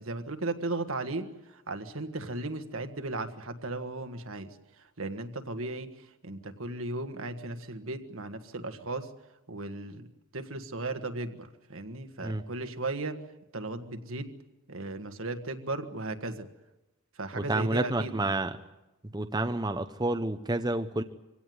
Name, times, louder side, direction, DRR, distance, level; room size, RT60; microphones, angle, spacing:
voice 1, 0.0-4.5 4.8-5.9 6.2-9.1 9.5-10.1 10.3-13.2 13.5-14.3 14.7-16.5 17.2-18.1, right 2 dB, 75° right, 7 dB, 1.6 m, -36 dB
voice 2, 17.4-18.6 19.1-21.0, right 2 dB, 20° right, 8 dB, 0.7 m, -29 dB
24.0 x 17.0 x 9.5 m, 1.0 s
head